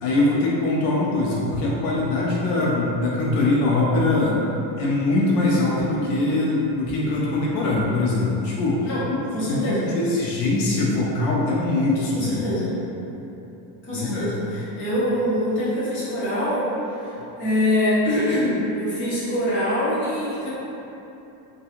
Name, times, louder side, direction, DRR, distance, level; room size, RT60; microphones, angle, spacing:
voice 1, 0.0-4.4 4.8-8.9 9.5-12.5 13.9-14.3, left 2 dB, 85° left, -5 dB, 0.6 m, -22 dB
voice 2, 9.3-9.9 12.1-12.7 13.8-20.5, left 1 dB, 25° left, -9 dB, 0.5 m, -24 dB
2.8 x 2.4 x 2.4 m, 3.0 s
cardioid pair, 165°, 49 cm